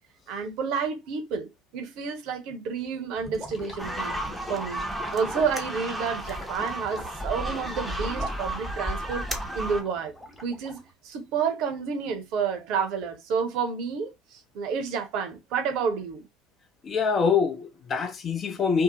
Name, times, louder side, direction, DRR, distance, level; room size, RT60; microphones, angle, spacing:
voice 1, 0.3-4.1 4.5-9.2 9.5-10.1 10.4-16.3, right 6 dB, 55° right, 0.7 m, -30 dB
Gurgling / Liquid, 3.2-10.9, left 1 dB, 10° left, 1.1 m, -42 dB
sound 1, 3.8-9.8, right 1 dB, 5° right, 0.7 m, -33 dB
voice 2, 16.8-18.8, left 5 dB, 35° left, 0.6 m, -24 dB
2.7 x 2.0 x 2.8 m
figure-of-eight pair, 70°, 0 cm